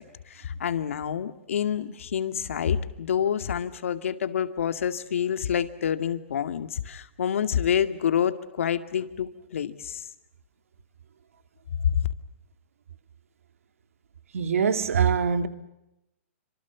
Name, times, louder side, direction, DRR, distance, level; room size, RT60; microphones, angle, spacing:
voice 1, 0.0-10.0 11.8-12.1, left 8 dB, 75° left, 2.3 m, -27 dB
voice 2, 14.3-15.5, right 7 dB, 90° right, 2.7 m, -23 dB
29.0 x 26.0 x 7.2 m
hypercardioid pair, 170°, 7 cm